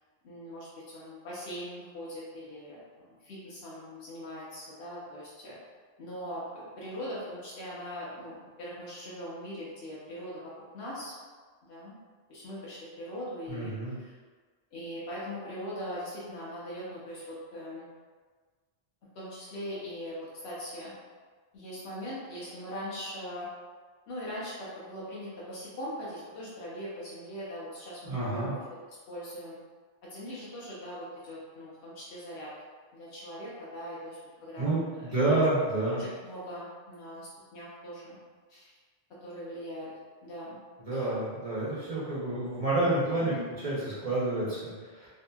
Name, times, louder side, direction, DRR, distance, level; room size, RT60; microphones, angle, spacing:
voice 1, 0.2-5.6 6.0-11.1 11.6-12.0 12.3-14.1 14.7-17.9 19.1-20.9 21.5-23.5 24.1-28.6 28.9-29.6 30.0-32.5 32.9-35.4 35.8-38.2 38.5-38.7 39.2-39.9 40.2-40.6 40.9-41.1 43.2-43.4, equal, 85° left, -7 dB, 1.0 m, -41 dB
voice 2, 13.5-13.9 28.0-28.5 34.6-36.0 40.8-43.3 43.6-45.1, right 2 dB, 40° right, -10 dB, 0.8 m, -29 dB
2.7 x 2.6 x 2.2 m, 1.5 s
omnidirectional pair, 1.1 m